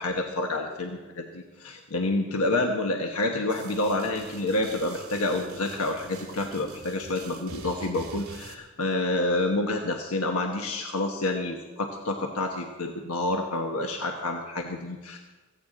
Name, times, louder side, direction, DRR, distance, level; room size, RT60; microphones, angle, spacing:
voice 1, 0.0-15.2, left 2 dB, 85° left, 3 dB, 1.2 m, -28 dB
sound 1, 3.5-8.5, right 3 dB, 85° right, 2.0 m, -45 dB
16.5 x 16.0 x 3.9 m, 1.3 s
head